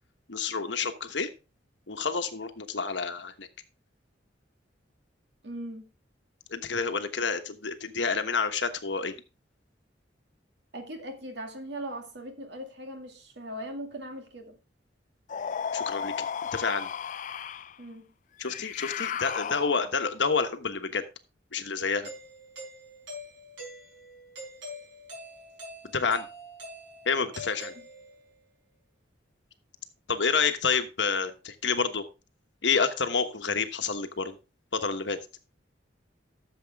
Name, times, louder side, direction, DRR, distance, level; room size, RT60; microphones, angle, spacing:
voice 1, 0.3-1.3 1.9-3.5 6.5-9.1 15.7-16.1 16.5-16.9 18.4-21.0 21.5-22.1 25.9-26.3 27.0-27.7 30.1-32.0 32.6-34.4 34.7-35.2, left 5 dB, 70° left, 1.2 m, -28 dB
voice 2, 5.4-5.9 10.7-14.6 17.8-18.1, right 1 dB, 65° right, 2.2 m, -39 dB
sound 1, 15.3-17.8 18.4-20.1, left 7 dB, 45° left, 0.4 m, -34 dB
Doorbell, 22.0-28.4, equal, 90° right, 5.0 m, -44 dB
12.5 x 7.1 x 3.5 m
head